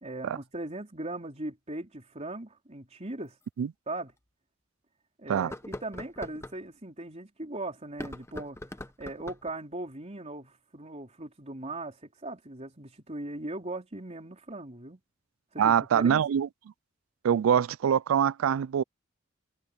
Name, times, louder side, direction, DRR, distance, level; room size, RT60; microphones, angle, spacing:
voice 1, 0.0-3.4 3.9-4.1 5.2-8.6 9.0-15.0 15.5-16.2, right 2 dB, 35° right, 4.2 m, -39 dB
sound 1, 3.4-3.5 4.1-4.2 5.4-6.6 7.9-9.5, left 1 dB, 15° left, 0.9 m, -42 dB
voice 2, 15.6-16.5 17.2-18.8, right 8 dB, 85° right, 0.3 m, -24 dB
head